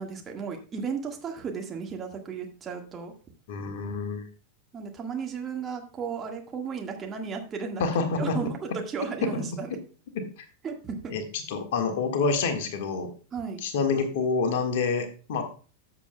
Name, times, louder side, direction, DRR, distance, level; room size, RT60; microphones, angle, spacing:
voice 1, 0.0-3.1 4.7-7.8 8.2-9.7 10.6-11.1 13.3-13.6, right 6 dB, 25° right, 2 dB, 1.6 m, -34 dB
voice 2, 3.5-4.3 7.8-8.4 9.2-9.5 11.1-13.1 13.6-15.4, left 4 dB, 55° left, 5 dB, 1.7 m, -27 dB
13.5 x 7.1 x 2.2 m, 0.37 s
figure-of-eight pair, 90°, 0 cm